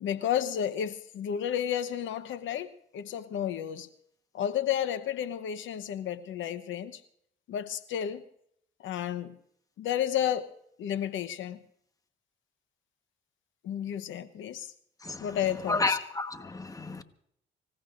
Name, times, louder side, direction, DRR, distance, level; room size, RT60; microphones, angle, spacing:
voice 1, 0.0-3.9 4.3-7.0 7.5-8.2 8.8-9.4 9.8-10.5 10.8-11.6 13.6-14.7 15.2-16.0, left 9 dB, 80° left, 1.0 m, -32 dB
voice 2, 15.7-17.0, left 3 dB, 15° left, 1.2 m, -31 dB
25.5 x 17.0 x 2.6 m
cardioid pair, 90°, 20 cm